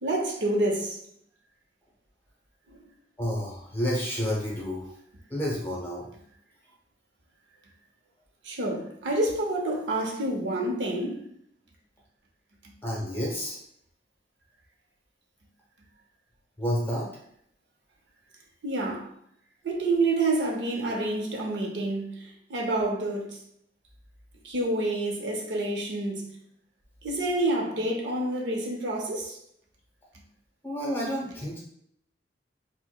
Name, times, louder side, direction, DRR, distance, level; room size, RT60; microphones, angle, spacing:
voice 1, 0.0-1.0 2.7-2.8 8.4-11.2 12.6-12.7 18.6-19.1 19.6-23.4 24.4-26.3 27.0-29.4, right 2 dB, 80° right, 0.7 m, -28 dB
voice 2, 3.2-4.9 5.3-6.1 12.8-13.6 16.6-17.1 30.6-31.6, equal, 15° left, 0.8 m, -30 dB
4.5 x 2.1 x 2.2 m
head